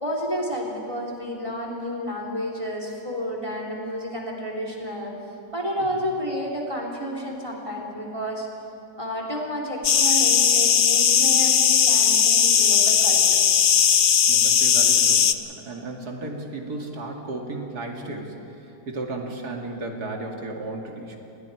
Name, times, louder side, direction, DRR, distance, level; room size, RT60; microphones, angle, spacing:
voice 1, 0.0-5.1 5.5-8.5 9.0-13.4, equal, 15° right, 0 dB, 3.0 m, -31 dB
sound 1, 9.8-15.3, left 8 dB, 60° left, 0.6 m, -18 dB
voice 2, 14.3-18.3 18.9-21.2, right 2 dB, 60° right, 1 dB, 2.8 m, -34 dB
29.0 x 20.0 x 4.8 m, 2.8 s
omnidirectional pair, 1.9 m